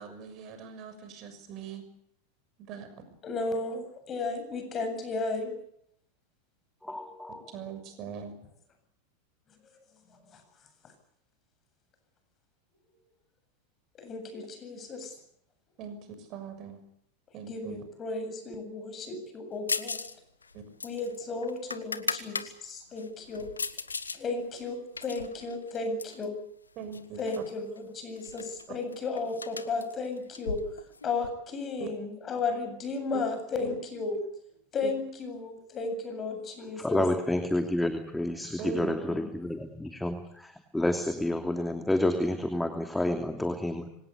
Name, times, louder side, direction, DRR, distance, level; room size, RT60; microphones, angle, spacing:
voice 1, 0.0-1.8 2.6-2.9 7.5-8.3 15.8-16.8 17.3-17.8 20.5-20.6 26.8-27.4 31.8-31.9 33.1-33.2 33.6-33.7 34.8-34.9 38.6-38.9, right 7 dB, 40° right, 9 dB, 6.6 m, -41 dB
voice 2, 3.2-5.6 10.3-10.4 14.0-15.2 17.5-20.1 20.8-23.5 24.1-26.4 27.2-30.6 31.0-34.2 34.7-37.0 39.1-39.3, left 3 dB, 30° left, 8 dB, 7.9 m, -34 dB
voice 3, 6.8-7.5 36.8-43.9, left 1 dB, 5° left, 6 dB, 2.9 m, -29 dB
sound 1, 19.7-20.1 20.4-22.5 23.0-24.2 24.5-26.2 26.9-27.5 27.8-27.9 28.2-31.3, left 4 dB, 80° left, 1.6 m, -37 dB
25.5 x 18.5 x 8.5 m, 0.72 s
figure-of-eight pair, 85°, 0 cm